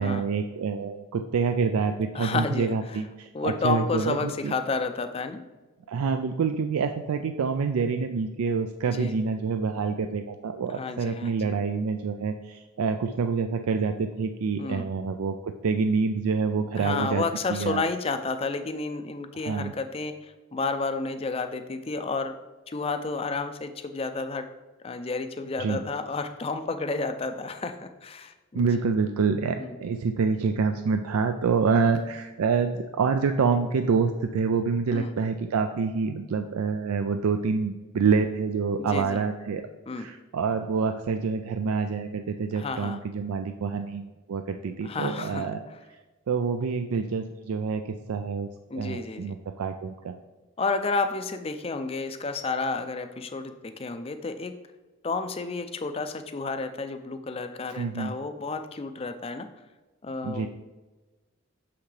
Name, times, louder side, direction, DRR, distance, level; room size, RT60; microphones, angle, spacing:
voice 1, 0.0-4.5 5.9-17.2 17.5-17.8 19.4-19.7 25.6-25.8 28.5-39.7 39.9-45.6 46.3-50.2 57.7-58.1 60.2-60.5, right 5 dB, 90° right, 7 dB, 0.4 m, -27 dB
voice 2, 2.1-3.0 3.3-5.4 8.8-9.1 10.7-11.6 14.6-14.9 16.7-22.3 22.7-24.5 24.8-28.9 29.6-29.8 34.9-35.1 38.8-39.2 39.9-40.1 42.5-43.0 44.8-45.8 48.7-49.3 50.6-54.5 55.0-59.5 60.0-60.5, left 3 dB, 25° left, 8 dB, 0.4 m, -31 dB
6.4 x 5.8 x 3.3 m, 1.2 s
head